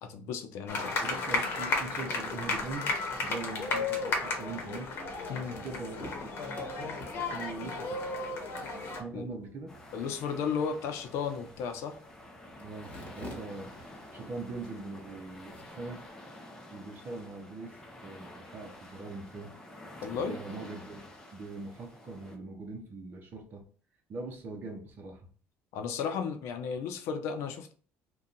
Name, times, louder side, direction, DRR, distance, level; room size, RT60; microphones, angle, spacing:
voice 1, 0.0-1.0 5.3-5.6 9.1-9.3 9.9-12.0 20.0-20.4 25.7-27.7, left 6 dB, 80° left, 7 dB, 0.6 m, -34 dB
sound 1, 0.7-9.0, left 3 dB, 55° left, 0.9 m, -33 dB
voice 2, 1.0-2.9 3.2-4.9 5.4-6.3 7.1-8.1 9.0-9.7 12.6-13.7 14.1-16.0 16.7-17.8 18.0-19.5 20.2-23.6 24.1-25.2, right 3 dB, 45° right, 0 dB, 0.7 m, -41 dB
sound 2, 5.0-16.1, equal, 30° left, 1.2 m, -52 dB
sound 3, 9.7-22.4, left 1 dB, 10° left, 0.6 m, -50 dB
2.7 x 2.3 x 3.7 m, 0.43 s
cardioid pair, 130°, 5 cm